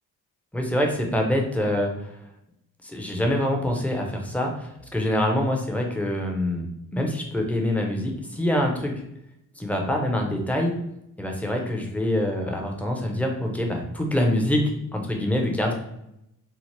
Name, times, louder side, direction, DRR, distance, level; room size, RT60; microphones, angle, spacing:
voice 1, 0.5-2.1 2.8-8.9 9.6-10.8 11.2-15.7, left 1 dB, 5° left, 1 dB, 0.6 m, -25 dB
2.9 x 2.0 x 3.1 m, 0.82 s
supercardioid pair, 65°, 37 cm